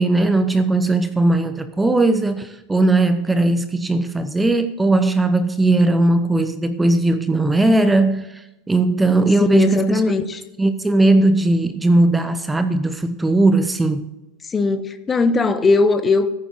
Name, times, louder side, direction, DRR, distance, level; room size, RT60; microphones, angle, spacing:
voice 1, 0.0-10.0 10.6-14.1, right 2 dB, 10° right, 0.7 m, -18 dB
voice 2, 9.5-10.4 14.5-16.3, left 3 dB, 20° left, 1.0 m, -19 dB
14.5 x 9.3 x 4.0 m
figure-of-eight pair, 85°, 0 cm